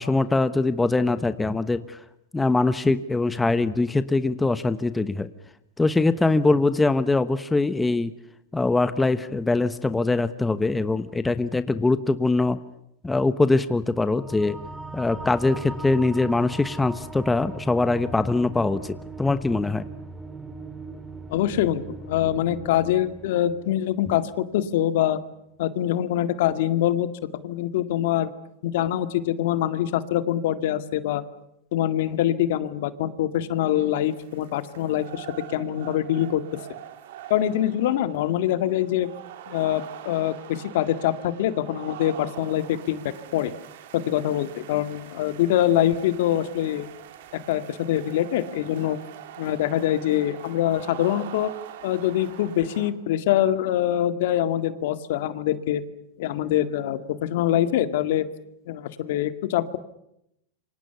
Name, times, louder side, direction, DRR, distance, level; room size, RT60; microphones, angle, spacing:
voice 1, 0.0-2.0 2.3-5.3 5.8-8.1 8.5-12.6 13.0-14.6 14.9-19.8, left 3 dB, 10° left, 12 dB, 1.1 m, -22 dB
sound 1, 14.0-24.9, right 3 dB, 10° right, 2.0 m, -40 dB
voice 2, 21.3-25.2 25.6-27.1 27.4-28.3 28.6-31.2 31.7-36.4 37.3-39.1 39.5-43.0 43.3-43.5 43.9-46.9 47.5-49.0 49.4-51.5 51.8-55.8 56.2-58.3 58.7-59.8, left 12 dB, 65° left, 11 dB, 2.0 m, -24 dB
sound 2, 33.7-52.9, right 11 dB, 70° right, 3.0 m, -44 dB
28.0 x 25.0 x 7.0 m, 0.79 s
supercardioid pair, 135°, 0 cm